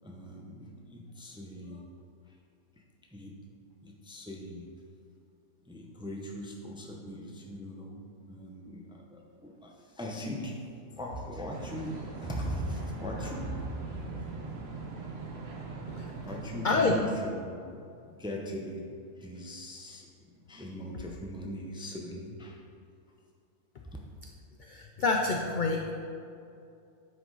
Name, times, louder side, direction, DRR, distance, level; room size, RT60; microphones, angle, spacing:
voice 1, 0.0-1.9 2.3-2.4 3.1-3.4 3.8-4.7 5.6-14.1 15.3-15.4 16.2-18.9 19.2-22.6 23.8-24.0, equal, 5° right, -1 dB, 0.5 m, -40 dB
sound 1, 11.5-17.0, right 4 dB, 50° right, 1.1 m, -40 dB
voice 2, 16.6-16.9 24.6-25.9, left 3 dB, 65° left, 2 dB, 0.4 m, -27 dB
9.6 x 5.2 x 3.9 m, 2.5 s
omnidirectional pair, 1.5 m